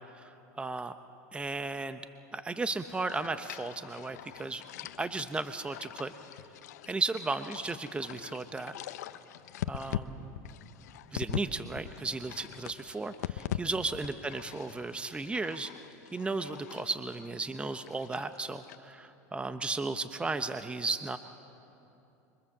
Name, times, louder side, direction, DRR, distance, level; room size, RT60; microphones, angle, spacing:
voice 1, 0.6-0.9 1.3-2.0 2.3-4.6 5.0-6.1 6.9-8.7 9.7-10.4 11.1-15.7 16.1-21.2, right 3 dB, 10° right, 10 dB, 0.9 m, -35 dB
sound 1, 2.8-11.5 11.8-13.6 13.9-18.8, left 12 dB, 80° left, 0.9 m, -42 dB
26.5 x 24.0 x 7.4 m, 2.8 s
supercardioid pair, 105°, 9 cm